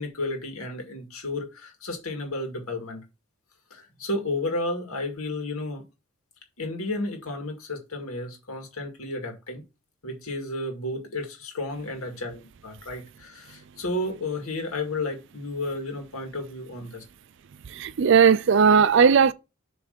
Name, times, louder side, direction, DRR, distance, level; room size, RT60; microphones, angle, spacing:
voice 1, 0.0-3.0 3.7-5.9 6.6-9.6 10.0-17.0, left 2 dB, 85° left, 2.1 m, -32 dB
voice 2, 17.7-19.3, right 6 dB, 55° right, 0.4 m, -17 dB
7.3 x 3.3 x 5.2 m
head